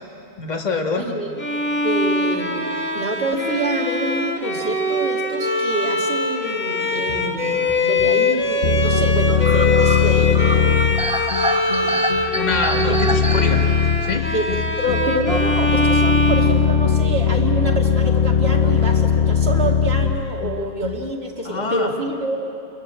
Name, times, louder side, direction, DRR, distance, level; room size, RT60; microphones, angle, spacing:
voice 1, 0.4-1.1 12.3-13.6 14.0-14.3 21.5-21.9, left 4 dB, 45° left, 3 dB, 1.8 m, -25 dB
voice 2, 0.9-1.4 1.8-10.8 11.7-12.1 12.9-13.0 13.2-13.6 14.3-22.5, right 2 dB, 75° right, 1 dB, 2.7 m, -27 dB
Bowed string instrument, 1.4-17.3, left 1 dB, 10° left, 2.0 m, -23 dB
sound 1, 6.8-14.6, equal, 5° right, 1.0 m, -29 dB
sound 2, 8.6-21.1, left 7 dB, 75° left, 1.1 m, -20 dB
30.0 x 22.5 x 7.6 m, 2.8 s
omnidirectional pair, 1.1 m